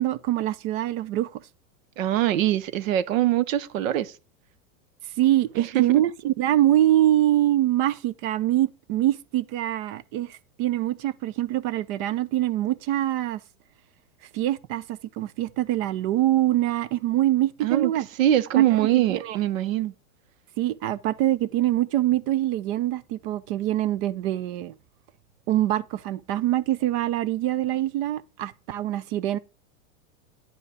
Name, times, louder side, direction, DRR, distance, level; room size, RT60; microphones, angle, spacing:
voice 1, 0.0-1.4 5.2-13.4 14.3-18.1 18.6-18.9 19.1-19.4 20.6-24.7 25.5-29.4, right 13 dB, 45° right, 0.6 m, -24 dB
voice 2, 2.0-4.1 5.6-6.0 17.6-17.9 18.2-19.9, right 13 dB, 65° right, 0.9 m, -23 dB
9.8 x 5.4 x 4.8 m
hypercardioid pair, 120°, 43 cm